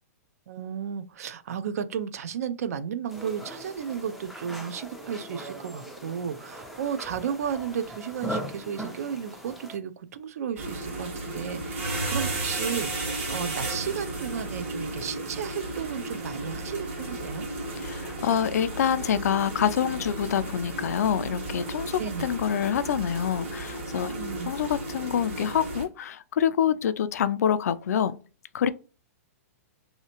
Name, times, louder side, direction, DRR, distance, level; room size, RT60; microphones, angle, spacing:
voice 1, 0.5-17.5 22.0-22.3 24.1-24.5, right 8 dB, 70° right, 0.4 m, -33 dB
sound 1, 3.1-9.8, right 1 dB, ahead, 0.4 m, -39 dB
sound 2, 10.6-25.8, right 2 dB, 50° right, 1.3 m, -34 dB
voice 2, 17.8-24.1 24.5-28.2 28.5-28.7, left 9 dB, 80° left, 0.4 m, -26 dB
3.2 x 2.8 x 2.8 m
hypercardioid pair, 160°, 8 cm